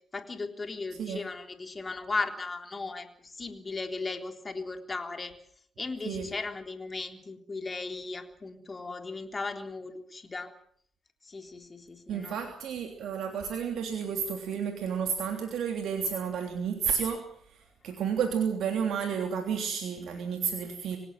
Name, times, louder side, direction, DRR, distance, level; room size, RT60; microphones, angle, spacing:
voice 1, 0.1-5.3 5.8-10.5 11.2-12.5, left 3 dB, 35° left, 6 dB, 3.7 m, -37 dB
voice 2, 12.1-17.2 17.8-21.0, right 7 dB, 65° right, 4 dB, 3.2 m, -31 dB
26.0 x 17.5 x 7.6 m, 0.63 s
hypercardioid pair, 45°, 0 cm